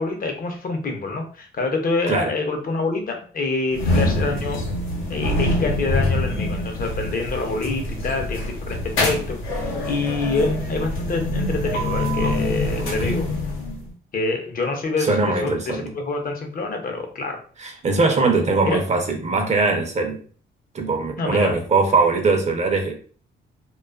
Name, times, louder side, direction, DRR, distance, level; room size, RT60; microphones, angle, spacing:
voice 1, 0.0-4.7 5.1-13.3 14.1-17.4 18.6-18.8 21.2-21.6, left 3 dB, 45° left, 0.7 m, -26 dB
sound 1, 3.7-13.9, left 1 dB, 85° left, 0.8 m, -25 dB
voice 2, 12.8-13.1 15.0-15.9 17.6-20.2 20.7-23.0, right 3 dB, 35° right, 0.5 m, -21 dB
2.4 x 2.3 x 2.3 m
cardioid pair, 90°, 20 cm